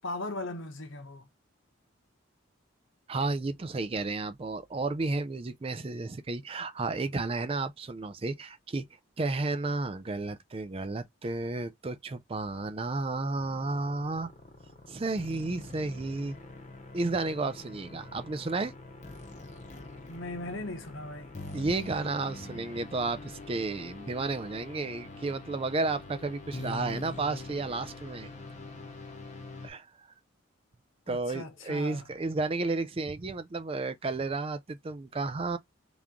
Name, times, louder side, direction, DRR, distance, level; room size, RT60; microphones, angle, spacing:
voice 1, 0.0-1.3 20.1-21.3 31.1-32.1, left 2 dB, 70° left, 1.0 m, -38 dB
voice 2, 3.1-8.8 9.2-14.3 14.9-16.4 16.9-18.7 21.5-28.3 29.6-30.1 31.1-35.6, right 3 dB, 25° right, 0.4 m, -32 dB
sound 1, 13.4-29.7, left 2 dB, 35° left, 0.9 m, -44 dB
3.5 x 3.0 x 3.6 m
head